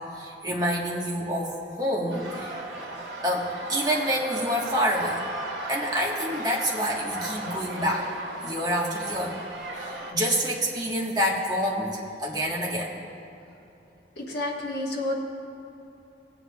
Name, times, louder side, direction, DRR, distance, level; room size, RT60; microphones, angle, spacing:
voice 1, 0.1-2.6 3.2-5.2 5.7-8.1 8.4-9.4 9.8-12.9, equal, 25° right, -4 dB, 1.4 m, -27 dB
sound 1, 2.1-10.1, right 2 dB, 90° right, 1.5 m, -36 dB
voice 2, 14.2-15.2, left 1 dB, 65° left, -2 dB, 1.4 m, -30 dB
20.0 x 7.9 x 2.3 m, 2.9 s
head